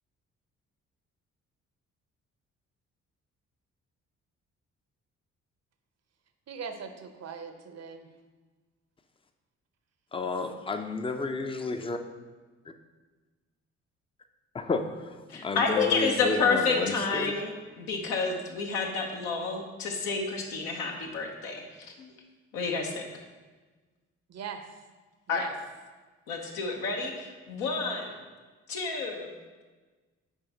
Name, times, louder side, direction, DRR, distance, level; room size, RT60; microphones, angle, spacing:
voice 1, 6.5-8.1 24.3-24.6 25.3-25.5, right 6 dB, 45° right, 7 dB, 0.8 m, -40 dB
voice 2, 10.1-12.0 14.5-17.3, left 3 dB, 15° left, 7 dB, 0.6 m, -31 dB
voice 3, 15.3-22.1 22.5-23.1 25.3-25.5 26.3-28.1 28.7-29.3, left 4 dB, 70° left, 1 dB, 1.1 m, -29 dB
7.2 x 4.8 x 4.1 m, 1.3 s
figure-of-eight pair, 40°, 37 cm